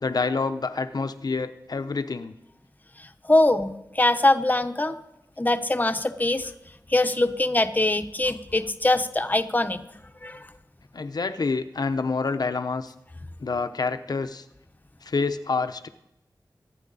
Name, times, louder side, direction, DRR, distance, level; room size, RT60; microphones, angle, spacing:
voice 1, 0.0-2.3 10.9-12.9 13.4-14.4 15.0-15.9, left 4 dB, 65° left, 9 dB, 0.9 m, -27 dB
voice 2, 3.0-5.0 5.4-6.5 6.9-9.8 10.2-10.5, left 2 dB, 25° left, 8 dB, 1.0 m, -23 dB
24.5 x 9.6 x 4.1 m, 0.86 s
cardioid pair, 50°, 7 cm